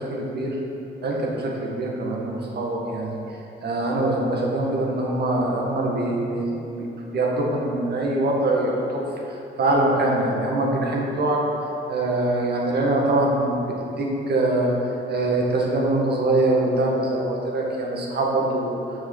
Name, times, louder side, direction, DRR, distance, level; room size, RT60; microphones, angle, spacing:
voice 1, 0.0-0.6 1.0-3.2 3.6-9.0 9.6-11.4 11.9-14.7 15.1-18.8, right 2 dB, 55° right, -2 dB, 1.9 m, -23 dB
7.3 x 6.1 x 7.3 m, 2.9 s
cardioid pair, 90°, 20 cm